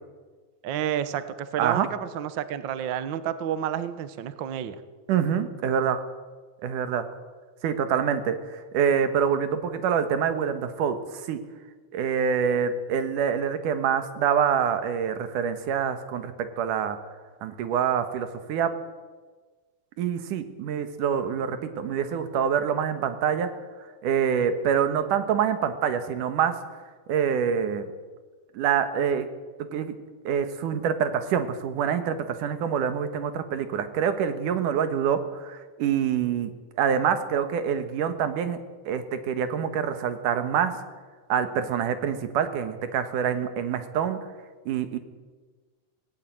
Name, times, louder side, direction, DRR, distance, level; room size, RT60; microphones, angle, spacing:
voice 1, 0.6-4.8, right 10 dB, 60° right, 13 dB, 1.2 m, -30 dB
voice 2, 5.1-6.0 6.6-7.1 7.6-11.4 11.9-17.0 17.4-18.7 20.0-23.5 24.0-26.6 27.1-27.8 28.5-29.3 29.6-30.0 30.2-36.5 36.8-38.6 38.9-40.8 41.3-44.2 44.7-45.0, right 8 dB, 90° right, 10 dB, 3.0 m, -26 dB
17.5 x 16.5 x 9.0 m, 1.4 s
omnidirectional pair, 3.6 m